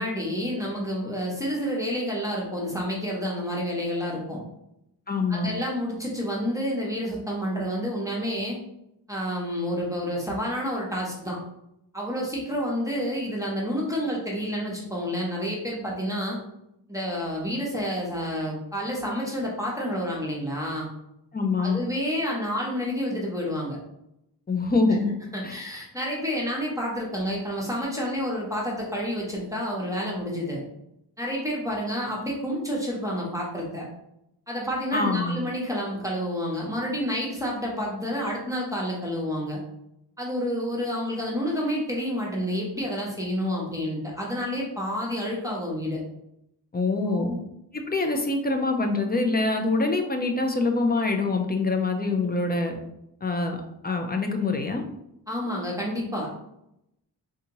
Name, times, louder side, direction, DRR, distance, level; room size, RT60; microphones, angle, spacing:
voice 1, 0.0-4.4 5.3-8.6 9.1-11.4 11.9-16.4 16.9-20.9 21.6-23.8 25.3-30.6 31.2-33.9 34.5-39.6 40.2-46.0 47.1-47.4 55.3-56.3, equal, 10° right, -4 dB, 0.7 m, -29 dB
voice 2, 5.1-5.5 21.3-21.8 24.5-25.1 25.4-25.6 34.9-35.4 46.7-47.3 47.9-52.8 53.2-54.8, left 3 dB, 25° left, 4 dB, 0.3 m, -25 dB
3.5 x 2.8 x 2.9 m, 0.81 s
wide cardioid pair, 150°, 42 cm